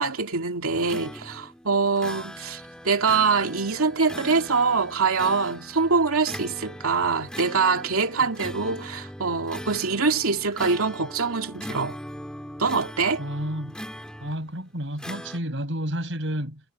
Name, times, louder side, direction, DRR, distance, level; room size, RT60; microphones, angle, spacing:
voice 1, 0.0-12.0 12.6-13.2, right 4 dB, 85° right, 2.5 m, -24 dB
sound 1, 0.7-14.5 15.0-15.4, equal, 5° left, 1.8 m, -40 dB
voice 2, 13.2-13.8 14.2-16.6, equal, 60° right, 5.8 m, -30 dB
head